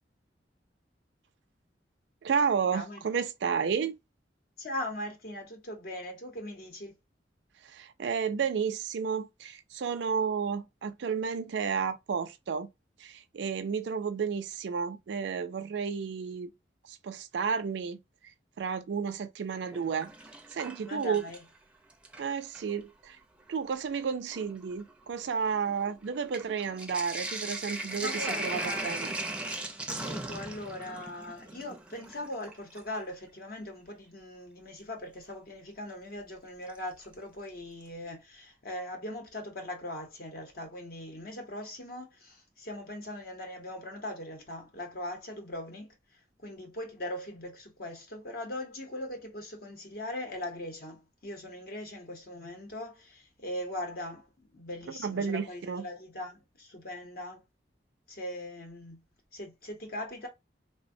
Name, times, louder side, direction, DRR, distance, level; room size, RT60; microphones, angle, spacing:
voice 1, 2.2-3.9 7.6-12.7 13.0-16.5 16.9-18.0 18.6-20.1 20.5-21.2 22.2-23.2 23.5-29.1 55.0-55.8, right 6 dB, 75° right, 0.4 m, -32 dB
voice 2, 4.6-7.0 20.8-21.4 28.0-29.0 29.8-45.9 46.4-54.3 54.5-57.4 58.1-59.0 59.3-60.3, left 1 dB, 55° left, 0.8 m, -40 dB
Sink (filling or washing), 19.5-21.6 21.9-22.7 23.5-23.6 23.9-33.0 34.8-34.9 36.7-37.1 37.5-37.6 37.8-37.9, right 2 dB, 5° right, 0.4 m, -38 dB
3.2 x 2.1 x 2.6 m
head